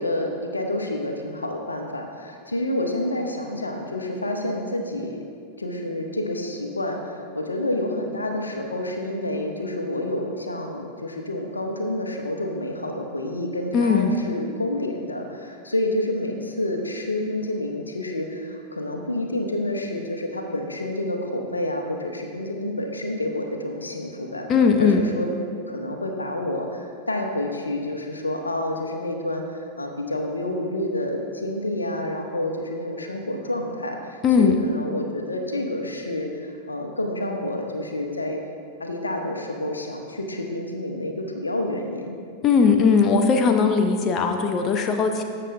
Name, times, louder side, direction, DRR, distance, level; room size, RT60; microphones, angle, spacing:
voice 1, 0.0-5.2 5.6-24.5 24.8-25.3 25.6-38.4 38.8-42.2, left 1 dB, 80° left, 3 dB, 0.8 m, -29 dB
voice 2, 13.7-14.2 24.5-25.0 34.2-34.6 42.4-45.2, left 5 dB, 30° left, 5 dB, 0.6 m, -19 dB
14.0 x 6.7 x 2.5 m, 2.2 s
figure-of-eight pair, 90°, 0 cm